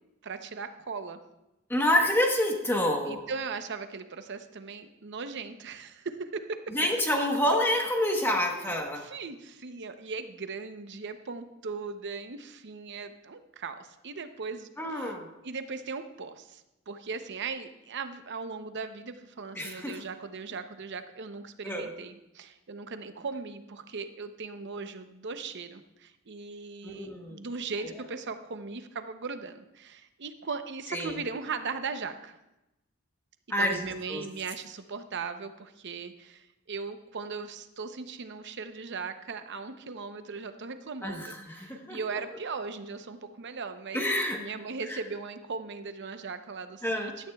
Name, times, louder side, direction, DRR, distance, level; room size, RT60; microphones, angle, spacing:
voice 1, 0.2-1.2 3.1-6.6 8.4-8.7 9.0-15.2 15.4-32.4 33.6-44.0 44.4-47.1, right 4 dB, 55° right, 9 dB, 0.7 m, -38 dB
voice 2, 1.7-3.2 6.7-9.1 14.8-15.3 19.6-20.0 21.6-21.9 26.8-27.4 30.9-31.2 33.5-34.2 41.0-42.2 43.9-44.4 44.9-45.0 46.8-47.2, left 1 dB, 10° left, 1 dB, 1.1 m, -28 dB
16.0 x 12.0 x 2.3 m, 0.93 s
head